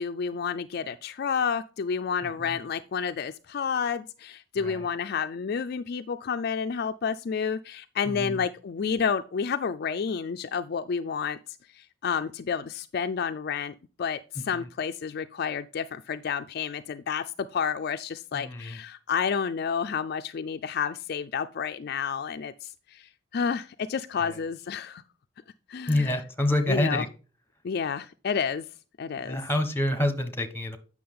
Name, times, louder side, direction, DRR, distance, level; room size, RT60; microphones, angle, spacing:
voice 1, 0.0-11.4 11.7-25.0 25.7-26.1 26.7-27.0 27.6-28.6 29.0-29.4, left 6 dB, 55° left, 0.4 m, -30 dB
voice 2, 2.2-2.6 4.6-4.9 8.0-8.5 14.5-14.7 18.3-18.8 24.2-24.4 25.9-27.1 29.2-30.8, left 1 dB, 10° left, 1.1 m, -28 dB
8.5 x 6.2 x 3.7 m
head